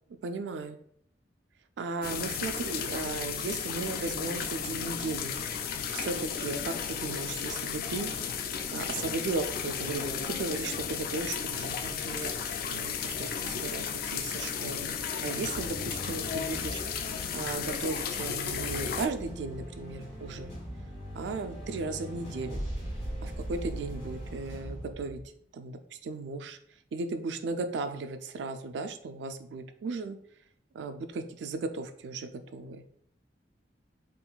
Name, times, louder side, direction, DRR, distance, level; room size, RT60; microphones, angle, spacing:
voice 1, 0.2-0.8 1.8-5.4 5.9-8.1 8.7-12.3 12.7-16.8 17.3-20.6 21.1-22.7 23.2-25.2 25.5-26.6 26.9-30.2 30.7-32.8, right 3 dB, 75° right, 8 dB, 0.3 m, -36 dB
sound 1, 2.0-19.1, left 7 dB, 55° left, 0.3 m, -34 dB
sound 2, 15.4-18.1 18.5-25.3, equal, 30° left, 1.3 m, -40 dB
3.7 x 2.5 x 2.3 m, 0.66 s
head